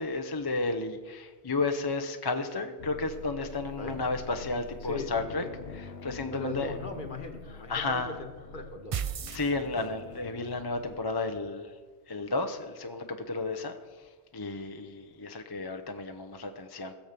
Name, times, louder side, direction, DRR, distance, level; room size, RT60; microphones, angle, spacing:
voice 1, 0.0-5.4 5.7-6.7 7.7-8.1 9.3-11.7 12.1-16.9, left 3 dB, 25° left, 6 dB, 0.7 m, -33 dB
sound 1, 2.8-11.0, left 5 dB, 65° left, 1.1 m, -46 dB
voice 2, 4.8-5.5 6.3-8.9, left 2 dB, 50° left, 5 dB, 1.6 m, -39 dB
sound 2, 8.9-10.2, right 8 dB, 60° right, 0.3 m, -34 dB
16.5 x 7.2 x 6.7 m, 1.4 s
omnidirectional pair, 1.1 m